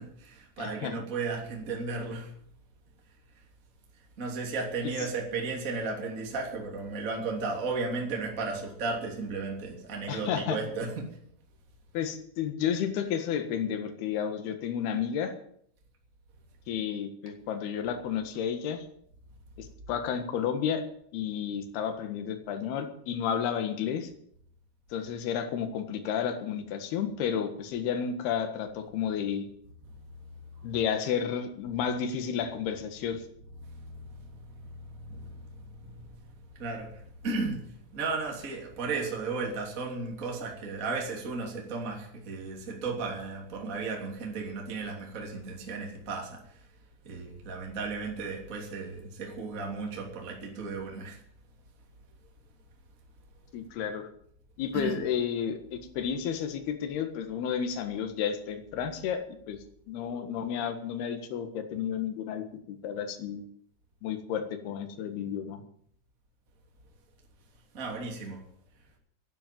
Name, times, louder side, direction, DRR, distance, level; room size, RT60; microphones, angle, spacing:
voice 1, 0.0-2.3 4.0-11.2 29.9-30.1 30.5-30.6 33.6-46.7 47.0-51.2 54.7-55.0 67.7-68.4, right 4 dB, 20° right, 0 dB, 2.4 m, -35 dB
voice 2, 0.6-0.9 10.1-10.6 11.9-15.3 16.7-18.8 19.6-20.8 21.1-24.1 24.9-29.5 30.6-33.2 53.5-54.1 54.6-59.2 59.5-59.6 59.9-63.4 64.0-65.6, left 8 dB, 60° left, 7 dB, 3.2 m, -31 dB
11.5 x 10.5 x 9.2 m, 0.66 s
omnidirectional pair, 5.7 m